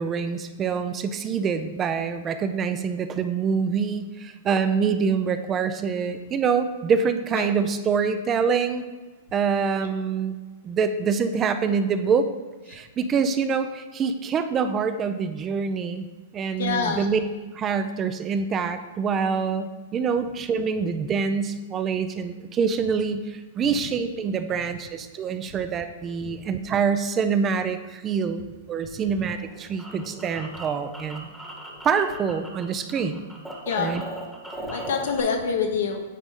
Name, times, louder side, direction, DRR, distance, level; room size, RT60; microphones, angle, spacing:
voice 1, 0.0-8.8 9.3-10.3 10.6-12.3 12.7-16.1 16.3-17.2 17.5-31.3 31.8-33.2 33.8-34.0, right 6 dB, 25° right, 10 dB, 0.4 m, -25 dB
voice 2, 16.6-17.1 23.7-23.8 26.2-26.4 33.6-33.9 34.7-36.0, left 6 dB, 70° left, 4 dB, 1.0 m, -26 dB
sound 1, 29.3-32.6 32.9-35.2, right 1 dB, 5° right, 1.1 m, -38 dB
9.1 x 4.0 x 3.7 m, 1.3 s
hypercardioid pair, 115°, 0 cm